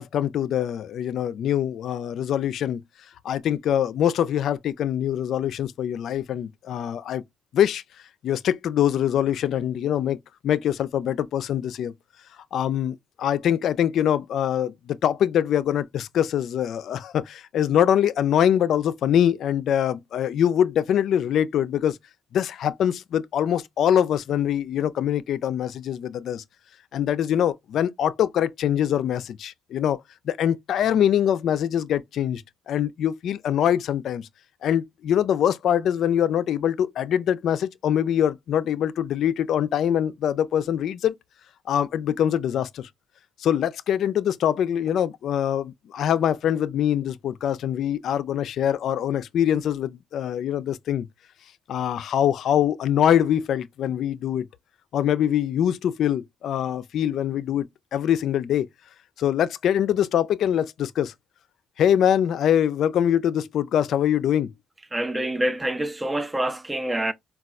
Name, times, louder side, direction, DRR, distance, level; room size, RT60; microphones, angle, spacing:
voice 1, 0.0-2.8 3.2-7.2 7.5-7.8 8.2-10.2 10.4-11.9 12.5-22.0 22.3-26.4 26.9-30.0 30.3-34.3 34.6-41.1 41.7-42.9 43.4-51.1 51.7-54.5 54.9-58.7 59.2-61.1 61.8-64.5, left 10 dB, 70° left, 0.3 m, -23 dB
voice 2, 64.9-67.1, right 1 dB, 15° right, 0.4 m, -26 dB
4.1 x 2.3 x 2.3 m
cardioid pair, 90°, 0 cm